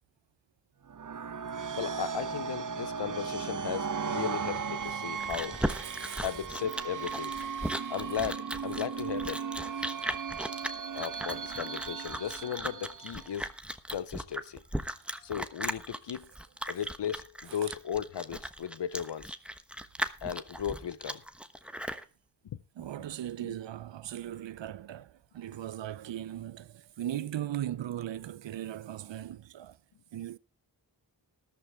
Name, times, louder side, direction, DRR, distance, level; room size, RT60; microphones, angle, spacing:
sound 1, 0.9-13.4, right 6 dB, 45° right, 0.8 m, -37 dB
voice 1, 1.7-5.7 6.2-7.3 7.9-9.5 10.9-13.5 13.9-14.6 15.2-16.3 16.7-19.4 20.2-21.2 22.4-22.6 23.4-23.6, left 9 dB, 70° left, 0.8 m, -36 dB
Chewing mastication, 4.8-22.0, equal, ahead, 1.1 m, -37 dB
voice 2, 5.8-6.3 7.6-7.9 12.3-12.4 14.9-15.0 17.5-17.6 22.8-29.8 30.1-30.4, right 12 dB, 80° right, 0.6 m, -38 dB
13.5 x 11.5 x 3.5 m
cardioid pair, 50°, 43 cm